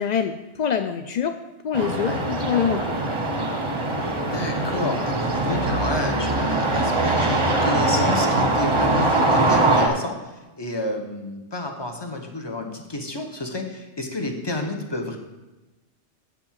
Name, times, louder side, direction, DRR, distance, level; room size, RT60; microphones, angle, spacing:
voice 1, 0.0-1.4 1.6-3.0, left 7 dB, 65° left, 8 dB, 0.4 m, -25 dB
sound 1, 1.7-9.9, right 2 dB, 25° right, 1.0 m, -22 dB
voice 2, 4.1-15.2, left 2 dB, 20° left, 3 dB, 1.1 m, -30 dB
8.0 x 5.2 x 7.3 m, 1.1 s
omnidirectional pair, 1.2 m